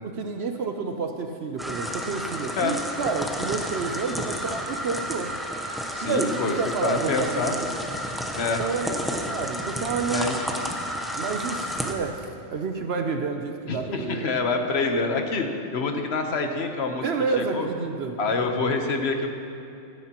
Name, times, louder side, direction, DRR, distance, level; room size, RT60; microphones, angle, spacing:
voice 1, 0.0-5.3 6.0-7.8 8.6-10.3 11.2-14.3 17.0-18.4, right 4 dB, 60° right, 4 dB, 0.9 m, -29 dB
sound 1, 1.6-11.9, equal, ahead, 0.6 m, -31 dB
voice 2, 5.9-6.5 6.8-7.5 8.4-8.6 10.1-10.7 13.7-15.5 15.7-17.0 17.4-17.7 18.2-19.3, left 3 dB, 60° left, 4 dB, 1.2 m, -26 dB
16.0 x 13.5 x 3.0 m, 2.6 s
omnidirectional pair, 1.3 m